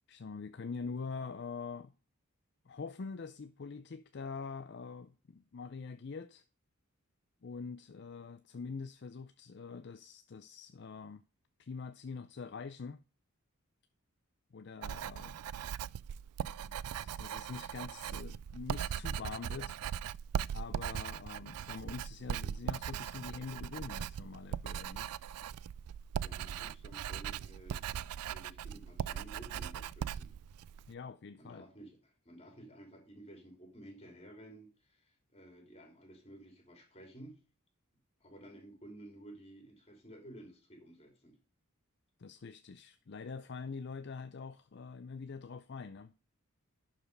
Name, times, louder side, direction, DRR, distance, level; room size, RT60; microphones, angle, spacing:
voice 1, 0.1-1.9 2.7-6.4 7.4-11.2 11.6-13.0 14.5-15.4 16.6-19.8 20.5-25.1 30.9-31.7 42.2-46.1, left 5 dB, 50° left, 0.5 m, -44 dB
Writing, 14.8-30.9, right 9 dB, 90° right, 0.3 m, -39 dB
voice 2, 26.2-27.9 28.3-30.3 31.4-37.4 38.2-41.4, right 1 dB, 25° left, 2.9 m, -53 dB
11.5 x 5.0 x 5.3 m
head